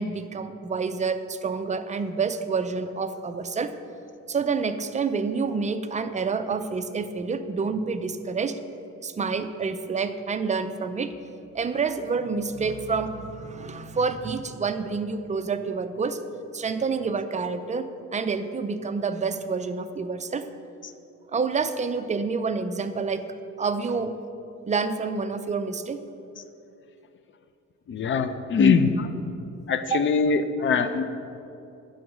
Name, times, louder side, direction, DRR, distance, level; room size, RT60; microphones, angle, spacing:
voice 1, 0.0-3.7 4.3-8.6 9.0-11.1 11.5-16.2 16.5-20.5 21.3-23.2 23.6-24.2 24.7-26.0 29.9-30.0, right 5 dB, 25° right, 10 dB, 0.4 m, -28 dB
voice 2, 27.9-29.1 29.7-31.0, left 5 dB, 40° left, 11 dB, 0.5 m, -22 dB
10.0 x 3.9 x 6.0 m, 2.7 s
cardioid pair, 90°, 30 cm